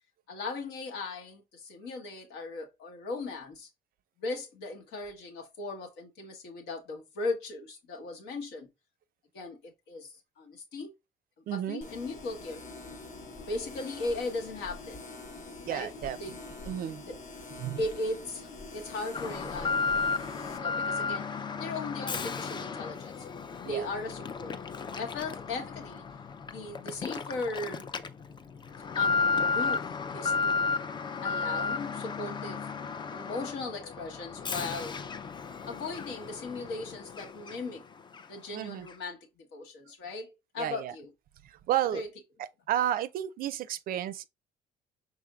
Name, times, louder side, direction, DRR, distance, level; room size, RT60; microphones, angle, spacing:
voice 1, 0.3-3.7 4.2-8.7 9.3-10.9 11.5-12.6 13.3-15.0 15.6-15.9 16.2-16.4 17.1-17.2 17.8-19.8 20.4-23.3 23.7-24.5 25.0-26.0 26.5-27.9 28.9-30.7 31.2-32.6 33.1-35.0 35.6-37.8 38.3-39.2 39.5-41.1 41.9-42.1, left 2 dB, 80° left, 1.2 m, -38 dB
voice 2, 11.5-11.8 15.7-16.4 16.7-17.0 17.6-17.8 23.6-23.9 38.5-38.9 40.6-40.9 41.4-42.0 42.4-44.3, right 11 dB, 60° right, 0.4 m, -32 dB
sound 1, 11.8-20.6, left 3 dB, 50° left, 1.0 m, -45 dB
Alarm, 19.1-37.8 38.1-38.2 38.9-39.0, left 5 dB, 25° left, 0.4 m, -33 dB
5.0 x 3.6 x 2.3 m
cardioid pair, 110°, 17 cm